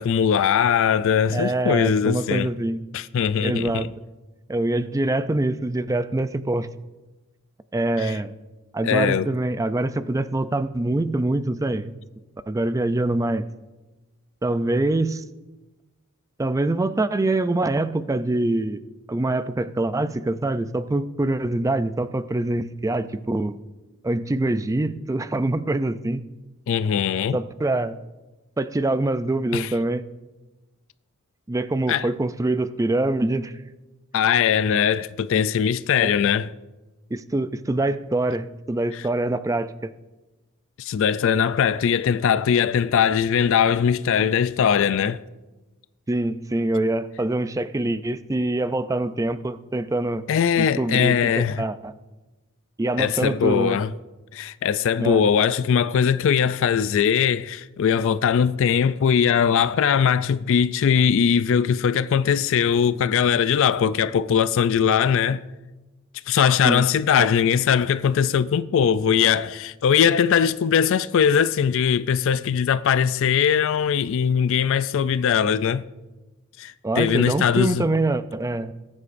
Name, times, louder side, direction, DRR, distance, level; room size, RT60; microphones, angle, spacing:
voice 1, 0.0-2.5 2.9-3.9 8.0-8.2 8.8-9.3 26.7-27.4 29.5-29.7 31.9-32.1 34.1-36.5 38.9-39.0 40.8-45.2 50.3-51.6 53.0-53.9 54.3-65.4 66.3-75.8 76.6-77.8, left 7 dB, 60° left, 0.3 m, -20 dB
voice 2, 1.3-2.8 3.4-3.9 4.5-6.7 7.7-8.3 8.7-11.9 12.5-13.5 14.4-15.2 16.4-18.8 19.1-23.6 24.0-26.2 27.3-28.0 28.6-30.0 31.5-33.5 36.0-36.1 37.1-39.9 46.1-50.3 50.6-51.9 52.8-53.8 55.0-55.2 66.6-66.8 67.2-67.3 76.8-78.7, right 2 dB, 15° right, 0.4 m, -24 dB
19.0 x 9.7 x 2.6 m
head